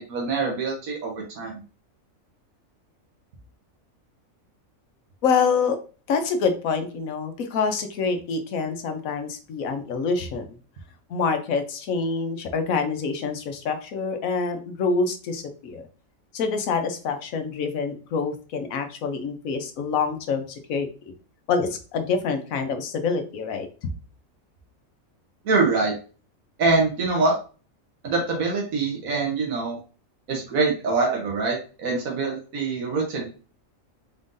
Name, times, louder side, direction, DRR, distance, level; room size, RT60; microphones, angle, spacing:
voice 1, 0.0-1.6 25.4-25.9 26.6-27.4 28.0-29.8 30.3-33.3, right 3 dB, 85° right, 0 dB, 1.5 m, -24 dB
voice 2, 5.2-5.8 6.1-10.4 11.1-15.9 16.3-20.9 21.5-23.7, left 5 dB, 80° left, 6 dB, 1.2 m, -26 dB
4.3 x 3.7 x 2.6 m, 0.37 s
omnidirectional pair, 1.4 m